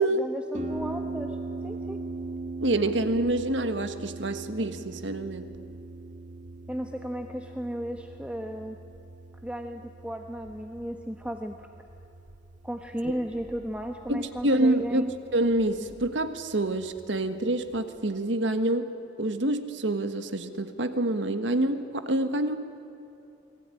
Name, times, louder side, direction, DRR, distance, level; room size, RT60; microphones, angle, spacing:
voice 1, 0.0-1.4 1.6-2.0 6.7-8.8 9.4-11.7 12.6-15.2, equal, 5° right, 4 dB, 1.2 m, -35 dB
Harp, 0.5-18.0, right 3 dB, 40° right, 2.2 m, -41 dB
voice 2, 2.6-5.5 13.0-13.1 14.1-18.9 19.2-22.6, right 1 dB, 75° right, 9 dB, 1.6 m, -27 dB
28.0 x 21.0 x 10.0 m, 2.9 s
head